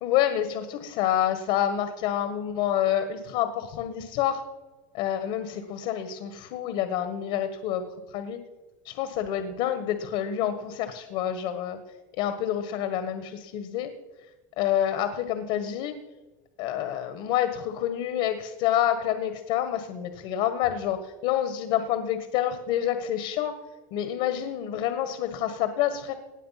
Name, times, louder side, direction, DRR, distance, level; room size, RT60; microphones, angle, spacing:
voice 1, 0.0-4.4 4.9-8.4 8.8-11.8 12.2-13.9 14.6-15.9 16.6-23.5 23.9-26.1, left 11 dB, 65° left, 9 dB, 1.5 m, -28 dB
18.5 x 7.7 x 5.9 m, 1.2 s
supercardioid pair, 125°, 10 cm